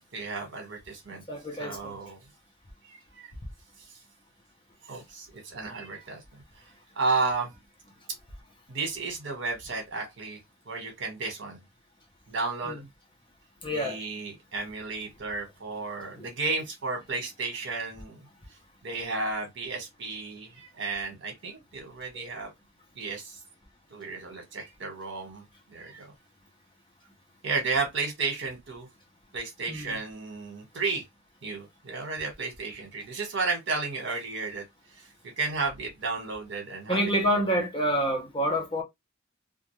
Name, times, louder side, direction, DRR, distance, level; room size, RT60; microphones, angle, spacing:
voice 1, 0.1-1.2 1.6-2.2 2.8-3.2 4.8-6.2 7.0-7.5 8.7-10.4 10.7-11.6 12.3-12.8 13.7-18.2 18.8-22.5 23.0-23.4 23.9-26.1 27.4-28.9 29.3-31.0 31.4-34.6 35.4-37.4, right 3 dB, 65° right, 1.1 m, -33 dB
voice 2, 1.3-2.0 12.6-12.8 13.6-14.0 16.2-16.3 22.1-22.3 29.7-30.0 36.9-38.8, equal, 25° left, 0.7 m, -28 dB
2.4 x 2.2 x 3.0 m
head